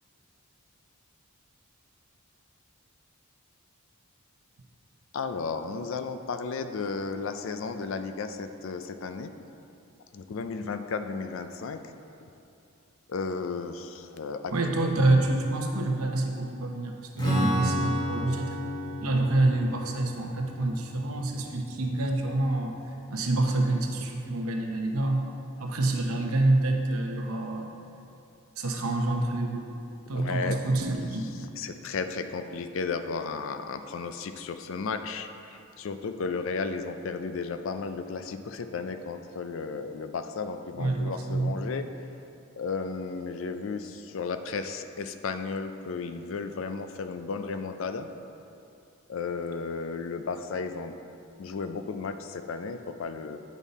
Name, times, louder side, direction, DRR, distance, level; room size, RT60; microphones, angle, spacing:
voice 1, 5.1-9.3 10.1-11.8 13.1-14.5 14.8-14.9 30.1-30.6 31.6-41.9 42.6-48.1 49.1-51.0 51.4-53.4, left 4 dB, 60° left, 8 dB, 0.4 m, -34 dB
voice 2, 14.5-18.6 19.0-22.7 23.1-25.3 25.6-27.7 28.6-29.6 30.1-31.3 40.8-41.6, right 2 dB, 80° right, 2 dB, 0.8 m, -27 dB
Strum, 17.2-22.8, equal, 20° left, 1.4 m, -33 dB
8.3 x 5.4 x 4.1 m, 2.7 s
head